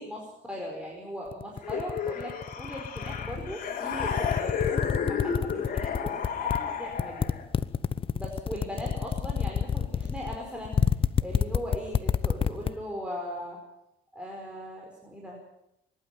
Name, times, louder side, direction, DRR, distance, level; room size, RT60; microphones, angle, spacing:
voice 1, 0.0-7.3 8.2-10.8 11.2-13.6 14.1-15.4, equal, 5° right, -2 dB, 5.1 m, -39 dB
sound 1, 1.3-3.5 3.9-6.6 6.9-12.7, left 7 dB, 30° left, 0.9 m, -27 dB
sound 2, 1.6-7.5, left 7 dB, 55° left, 4.5 m, -32 dB
24.0 x 12.0 x 9.3 m, 0.83 s
cardioid pair, 110°, 17 cm